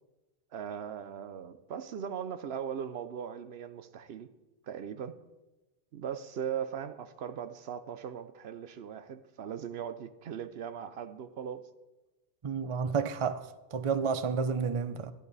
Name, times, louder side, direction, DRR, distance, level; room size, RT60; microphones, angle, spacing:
voice 1, 0.5-4.3 4.6-5.2 5.9-11.7, right 8 dB, 75° right, 0.9 m, -39 dB
voice 2, 12.4-15.1, right 5 dB, 40° right, 0.5 m, -31 dB
12.0 x 11.5 x 4.0 m
omnidirectional pair, 1.1 m